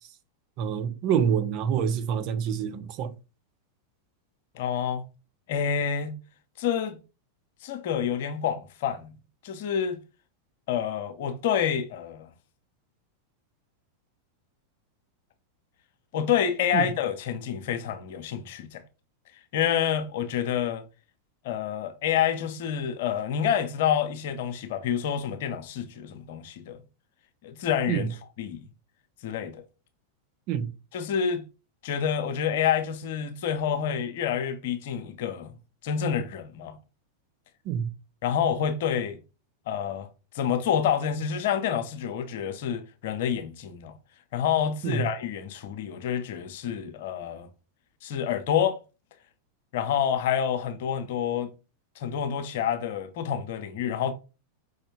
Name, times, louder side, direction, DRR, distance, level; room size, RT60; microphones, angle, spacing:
voice 1, 0.6-3.1 16.7-16.9 27.9-28.1 30.5-30.7 37.7-37.9 44.8-45.1, right 8 dB, 40° right, 0.6 m, -26 dB
voice 2, 4.5-5.0 5.5-6.1 6.6-7.0 7.6-9.1 9.4-10.0 10.7-12.3 16.1-18.8 19.5-20.8 21.4-26.8 27.4-28.1 28.4-28.6 29.2-29.6 30.9-31.4 31.8-35.5 35.8-36.8 38.2-39.2 39.7-40.1 40.3-43.9 44.3-47.5 48.0-48.8 49.7-51.5 52.0-54.1, left 8 dB, 55° left, 0.7 m, -28 dB
5.2 x 3.2 x 2.8 m
figure-of-eight pair, 90°, 0 cm